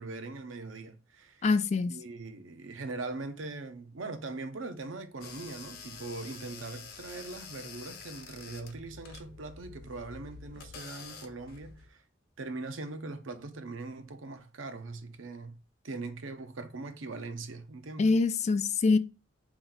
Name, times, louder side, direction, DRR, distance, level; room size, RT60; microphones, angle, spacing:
voice 1, 0.0-1.4 1.9-12.0 12.4-15.6 15.8-18.2, right 3 dB, 85° right, 0.7 m, -41 dB
voice 2, 1.4-1.9 18.0-19.0, left 4 dB, 35° left, 0.3 m, -24 dB
sound 1, 5.2-11.9, left 5 dB, 55° left, 0.9 m, -48 dB
4.3 x 3.0 x 3.9 m
head